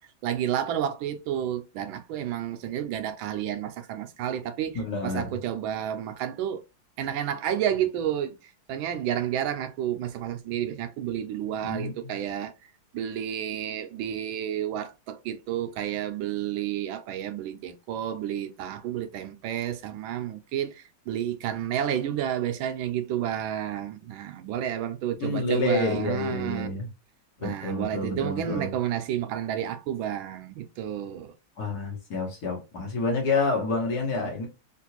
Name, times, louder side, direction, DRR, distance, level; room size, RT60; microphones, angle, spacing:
voice 1, 0.2-6.6 7.0-8.4 8.7-12.5 12.9-26.7 27.4-31.3, right 10 dB, 80° right, 1.3 m, -30 dB
voice 2, 4.7-5.3 11.6-11.9 25.2-26.9 27.4-28.7 31.6-34.5, left 3 dB, 55° left, 1.4 m, -28 dB
3.7 x 2.4 x 2.8 m
omnidirectional pair, 2.2 m